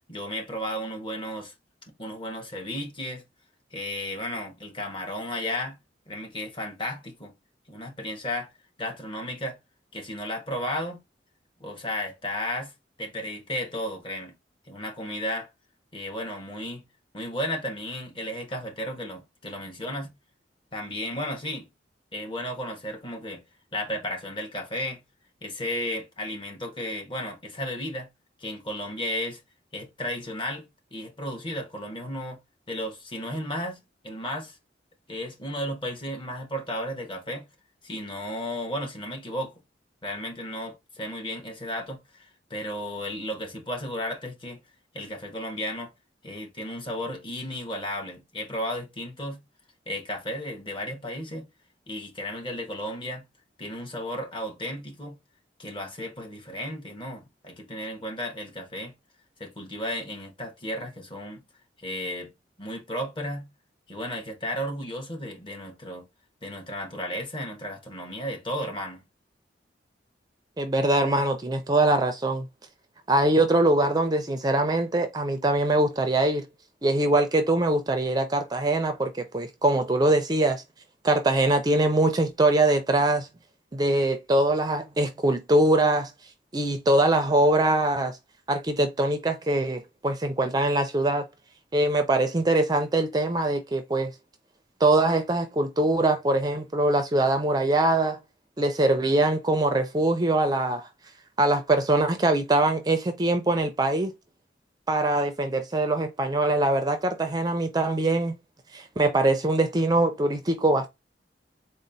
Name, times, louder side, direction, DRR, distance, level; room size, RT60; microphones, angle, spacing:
voice 1, 0.1-1.5 2.0-3.2 3.7-5.8 6.1-7.3 7.7-8.5 8.8-9.6 9.9-11.0 11.6-12.7 13.0-14.3 14.7-15.5 15.9-16.8 17.1-20.1 20.7-21.7 22.1-23.4 23.7-25.0 25.4-28.1 28.4-29.4 29.7-32.4 32.7-33.8 34.0-34.6 35.1-37.5 37.8-39.5 40.0-44.6 44.9-45.9 46.2-49.4 49.9-51.5 51.9-53.2 53.6-55.2 55.6-58.9 59.4-61.4 61.8-62.3 62.6-63.5 63.9-66.0 66.4-69.0, left 1 dB, 30° left, 1.1 m, -34 dB
voice 2, 70.6-72.5 73.1-76.5 76.8-80.6 81.0-83.3 83.7-86.1 86.5-88.2 88.5-91.3 91.7-94.1 94.8-98.2 98.6-100.9 101.4-104.1 104.9-108.4 108.7-110.9, right 2 dB, 25° right, 0.5 m, -23 dB
4.1 x 2.1 x 3.9 m
head